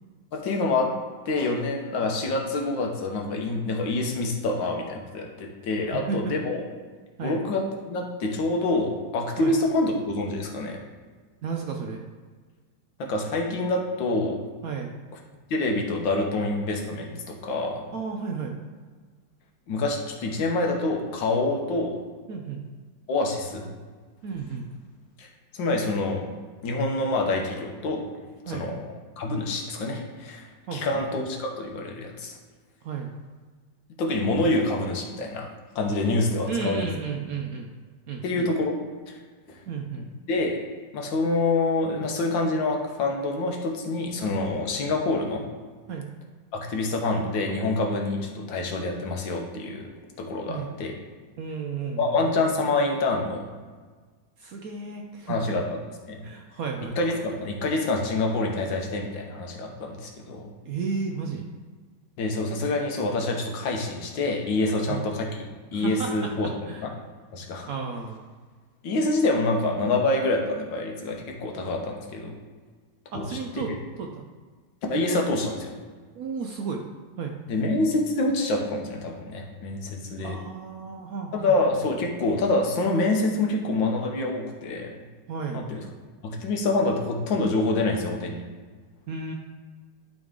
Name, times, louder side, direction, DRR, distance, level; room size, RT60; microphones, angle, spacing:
voice 1, 0.3-0.9 1.3-6.6 7.2-10.8 13.0-14.4 15.5-17.9 19.7-22.0 23.1-23.7 25.2-25.3 25.5-26.2 26.6-28.0 28.5-28.8 29.2-32.4 34.0-35.5 35.8-36.8 38.2-38.8 39.1-39.2 39.5-39.6 40.3-40.6 40.9-45.4 46.5-49.8 50.2-50.9 52.0-53.5 55.3-55.6 56.1-56.2 57.0-60.5 62.2-65.3 65.7-66.5 66.8-66.9 67.3-67.7 68.8-72.4 73.1-73.7 74.9-75.8 77.5-80.4 81.3-84.9 85.5-85.8 86.2-88.4, left 2 dB, 80° left, 1 dB, 1.8 m, -26 dB
voice 2, 5.9-6.3 7.2-7.4 9.4-9.6 11.4-12.0 14.6-14.9 17.9-18.6 22.3-22.7 24.2-24.7 28.4-28.7 30.7-31.0 32.8-33.2 36.4-37.7 38.1-38.5 39.7-40.1 45.9-46.1 50.5-50.7 51.4-52.2 54.4-55.6 56.2-57.0 60.7-61.5 64.9-65.0 65.7-66.9 67.7-68.2 73.1-74.3 76.2-76.8 77.2-77.4 80.2-81.5 85.3-85.6 89.1-89.3, right 5 dB, 65° right, 2 dB, 0.9 m, -33 dB
11.5 x 3.9 x 3.7 m, 1.4 s
omnidirectional pair, 2.0 m